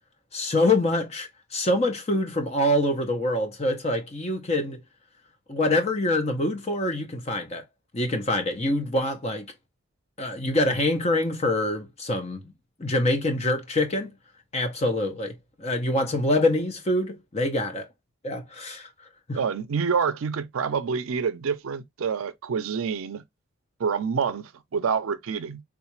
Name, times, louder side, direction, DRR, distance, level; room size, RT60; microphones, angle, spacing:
voice 1, 0.3-4.8 5.5-7.6 7.9-9.5 10.2-12.4 12.8-14.1 14.5-17.9 18.2-18.9 19.3-19.4, left 1 dB, 30° left, 0.6 m, -25 dB
voice 2, 19.3-23.2 23.8-25.6, right 6 dB, 70° right, 0.4 m, -27 dB
3.6 x 2.4 x 3.0 m
head